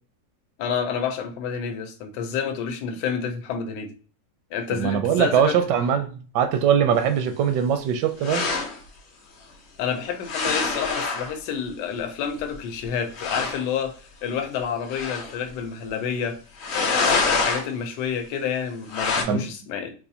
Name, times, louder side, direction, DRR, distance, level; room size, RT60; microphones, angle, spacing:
voice 1, 0.6-3.9 4.5-5.6 9.8-13.9 14.2-16.4 16.7-19.9, left 7 dB, 80° left, 7 dB, 1.2 m, -29 dB
voice 2, 4.7-8.4 19.3-19.4, right 8 dB, 80° right, 8 dB, 1.2 m, -21 dB
sound 1, 8.2-8.8 10.2-11.3 12.5-12.6 12.8-12.9 13.1-13.6 14.9-15.4 16.6-17.7 18.9-19.2, left 4 dB, 55° left, 0.8 m, -25 dB
4.2 x 2.3 x 2.6 m, 0.39 s
omnidirectional pair, 1.9 m